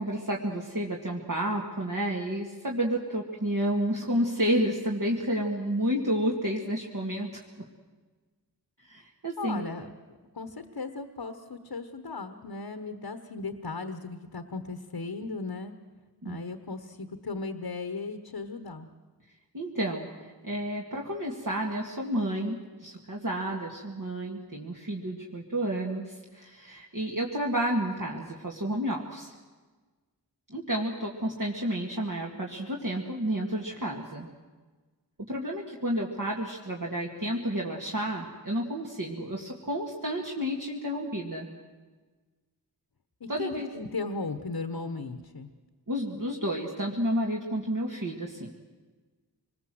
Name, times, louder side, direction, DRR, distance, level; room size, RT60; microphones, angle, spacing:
voice 1, 0.0-7.4 8.8-9.6 16.2-16.4 19.5-20.1 20.4-29.3 30.5-34.3 35.3-41.6 43.3-43.7 45.9-48.5, right 1 dB, 55° right, -2 dB, 2.3 m, -30 dB
voice 2, 9.4-9.9 10.3-15.7 16.2-18.9 43.2-45.5, left 3 dB, 80° left, 9 dB, 1.2 m, -36 dB
25.5 x 20.5 x 7.8 m, 1.4 s
wide cardioid pair, 50°, 38 cm